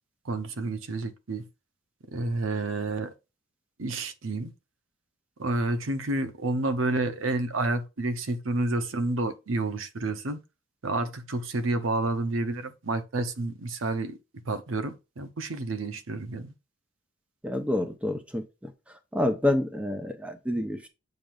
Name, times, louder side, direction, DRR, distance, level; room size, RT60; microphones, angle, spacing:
voice 1, 0.2-1.5 2.1-3.1 3.8-4.5 5.4-10.4 10.8-14.2 14.5-16.5, right 2 dB, 85° right, 0.8 m, -29 dB
voice 2, 17.4-18.7 19.1-20.9, left 1 dB, 5° right, 0.8 m, -28 dB
7.6 x 5.2 x 2.5 m
head